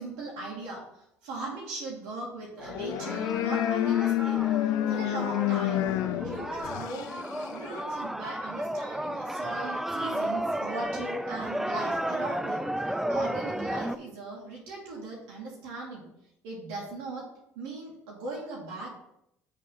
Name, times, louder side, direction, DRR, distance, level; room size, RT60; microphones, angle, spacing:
voice 1, 0.0-4.4 4.9-5.8 6.2-7.1 7.5-16.1 16.4-17.2 17.6-19.0, right 2 dB, 75° right, -3 dB, 2.2 m, -39 dB
sound 1, 2.6-7.9, left 12 dB, 65° left, 0.5 m, -29 dB
sound 2, 2.6-14.0, right 1 dB, 5° right, 0.4 m, -33 dB
6.3 x 4.1 x 5.6 m, 0.79 s
hypercardioid pair, 65°, 7 cm